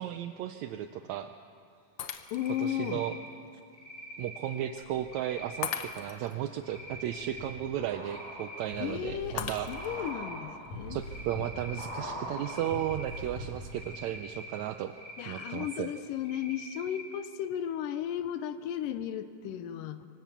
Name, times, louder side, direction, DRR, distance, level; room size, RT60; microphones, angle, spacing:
voice 1, 0.0-1.3 2.6-3.2 4.2-9.9 10.9-14.9 15.3-15.9, right 11 dB, 80° right, 8 dB, 1.6 m, -35 dB
Shatter, 2.0-2.7 3.3-3.4 5.6-6.4 9.4-10.1, left 8 dB, 70° left, 1.3 m, -38 dB
voice 2, 2.3-3.0 8.8-11.0 15.2-20.1, left 10 dB, 90° left, 11 dB, 2.4 m, -35 dB
Cricket, 2.3-3.2 3.7-4.6 5.0-5.9 6.6-7.4 7.9-8.9 9.2-10.4 11.0-11.8 12.3-13.2 13.7-14.5 14.9-15.7 16.2-17.0, equal, 25° left, 5.7 m, -45 dB
sound 1, 4.8-5.5 6.0-13.8 14.1-14.2, equal, 55° left, 7.1 m, -42 dB
25.5 x 13.5 x 8.3 m, 2.6 s
omnidirectional pair, 3.8 m